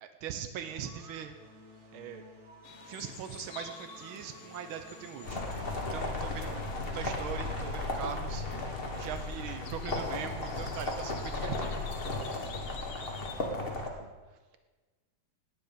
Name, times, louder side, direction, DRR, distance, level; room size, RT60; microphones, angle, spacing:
voice 1, 0.0-1.3 1.9-2.2 2.9-6.7 6.9-11.8, right 8 dB, 85° right, 7 dB, 1.1 m, -41 dB
sound 1, 0.6-6.1, equal, 35° right, 1.2 m, -53 dB
sound 2, 2.6-13.5, left 6 dB, 65° left, 1.3 m, -50 dB
sound 3, 5.2-13.9, left 2 dB, 40° left, 0.8 m, -35 dB
voice 2, 13.4-14.6, right 7 dB, 60° right, 8 dB, 1.5 m, -55 dB
18.0 x 9.9 x 5.2 m, 1.3 s
omnidirectional pair, 3.5 m